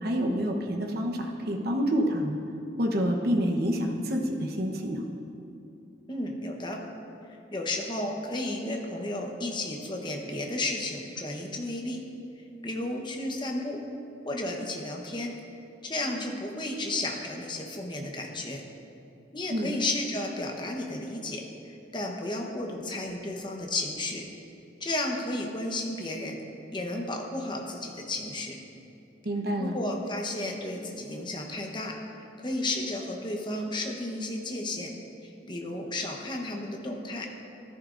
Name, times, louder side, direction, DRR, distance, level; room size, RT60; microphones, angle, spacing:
voice 1, 0.0-2.4 2.8-5.0 19.5-19.7 29.2-29.7, equal, 55° right, 2 dB, 1.0 m, -28 dB
voice 2, 6.1-6.8 7.5-12.0 12.6-13.8 14.2-15.3 15.8-18.6 19.3-24.2 24.8-26.4 26.7-28.6 29.6-32.0 32.4-34.9 35.2-37.3, left 2 dB, 25° left, 1 dB, 1.0 m, -33 dB
14.0 x 11.0 x 2.6 m, 2.7 s
head